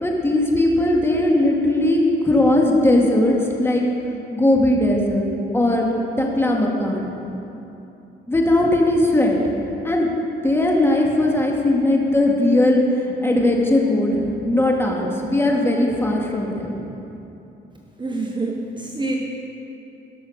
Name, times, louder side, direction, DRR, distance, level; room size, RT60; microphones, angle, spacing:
voice 1, 0.0-3.8 4.3-5.9 6.2-7.1 8.3-9.4 9.8-10.1 10.4-12.8 13.2-14.2 14.5-16.7, left 1 dB, 10° left, -1 dB, 2.1 m, -18 dB
voice 2, 18.0-19.2, right 2 dB, 25° right, 0 dB, 1.1 m, -26 dB
17.0 x 6.2 x 6.6 m, 2.9 s
cardioid pair, 90°, 20 cm